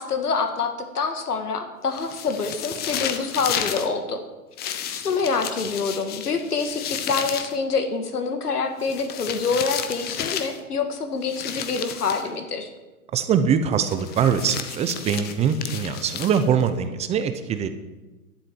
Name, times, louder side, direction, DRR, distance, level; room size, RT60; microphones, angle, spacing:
voice 1, 0.0-4.2 4.6-12.7, left 4 dB, 85° left, 7 dB, 2.0 m, -26 dB
sound 1, 1.9-3.9 4.6-7.5 8.8-10.6 11.3-12.3 13.9-16.7, left 9 dB, 20° left, 0.9 m, -32 dB
voice 2, 13.1-17.7, right 7 dB, 15° right, 10 dB, 0.6 m, -23 dB
11.5 x 7.5 x 9.1 m, 1.1 s
hypercardioid pair, 125°, 45 cm